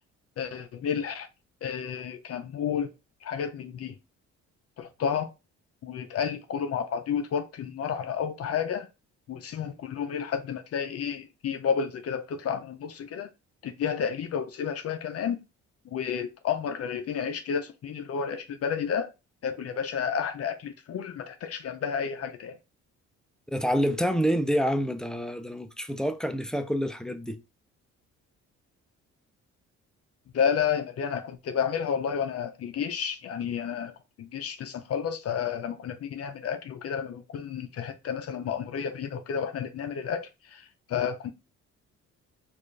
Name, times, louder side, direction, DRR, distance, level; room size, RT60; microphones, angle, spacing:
voice 1, 0.4-1.3 1.6-2.9 3.2-4.0 4.8-5.3 5.8-8.9 9.3-13.3 13.6-15.4 15.9-19.1 19.4-22.6 30.3-33.9 34.2-41.3, left 7 dB, 55° left, 0.6 m, -31 dB
voice 2, 23.5-27.4, equal, ahead, 0.4 m, -27 dB
4.3 x 2.5 x 3.2 m
cardioid pair, 85°, 30 cm